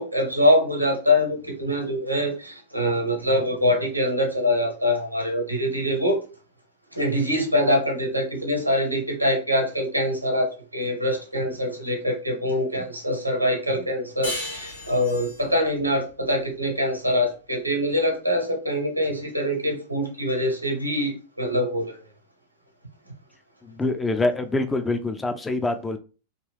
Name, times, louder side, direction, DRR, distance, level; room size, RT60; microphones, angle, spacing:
voice 1, 0.0-6.2 6.9-22.0, left 1 dB, 90° right, 0.8 m, -24 dB
sound 1, 14.2-17.4, left 1 dB, 85° left, 1.0 m, -36 dB
voice 2, 23.6-26.0, left 2 dB, 10° left, 0.3 m, -25 dB
2.6 x 2.3 x 3.3 m
figure-of-eight pair, 90°, 0 cm